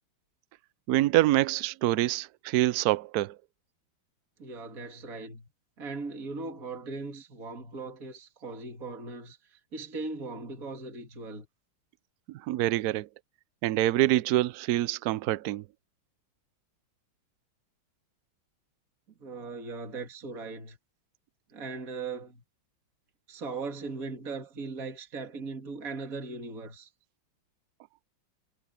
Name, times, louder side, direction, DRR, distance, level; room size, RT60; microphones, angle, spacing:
voice 1, 0.9-3.4 12.3-13.1 13.6-15.6, right 15 dB, 85° right, 0.8 m, -26 dB
voice 2, 4.4-5.5 5.8-11.5 19.2-20.8 21.5-22.4 23.3-26.9, right 3 dB, 40° right, 2.8 m, -39 dB
omnidirectional pair, 2.3 m